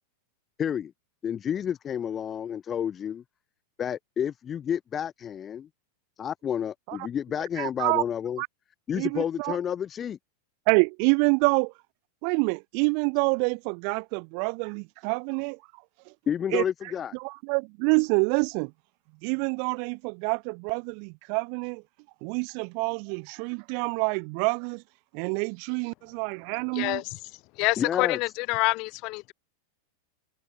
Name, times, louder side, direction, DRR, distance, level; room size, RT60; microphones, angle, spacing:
voice 1, 0.6-0.9 1.2-3.2 3.8-5.7 6.2-8.4 8.9-10.2 16.3-17.2 27.8-28.2, left 8 dB, 25° left, 2.1 m, -30 dB
voice 2, 7.6-8.0 8.4-8.5 8.9-9.6 10.7-11.7 12.2-15.6 16.1-16.2 16.5-16.6 17.1-18.7 19.2-21.8 22.2-24.8 25.1-27.0, right 40 dB or more, 45° right, 1.1 m, -27 dB
voice 3, 26.7-27.2 27.5-29.3, left 25 dB, 40° left, 7.0 m, -27 dB
figure-of-eight pair, 90°, 0 cm